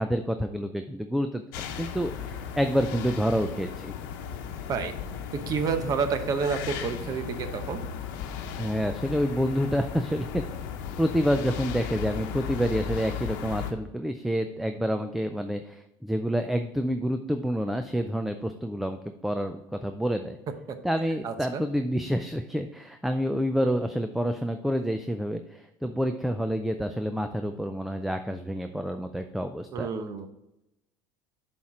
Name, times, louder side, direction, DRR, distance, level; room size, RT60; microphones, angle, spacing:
voice 1, 0.0-3.9 8.6-10.4 11.0-20.4 20.8-29.9, equal, ahead, 7 dB, 0.3 m, -28 dB
sound 1, 1.5-13.7, left 8 dB, 80° left, 0.9 m, -36 dB
voice 2, 5.3-7.8 21.2-21.6 29.7-30.3, right 5 dB, 35° right, 9 dB, 0.8 m, -29 dB
7.1 x 4.4 x 4.8 m, 0.91 s
supercardioid pair, 135°, 11 cm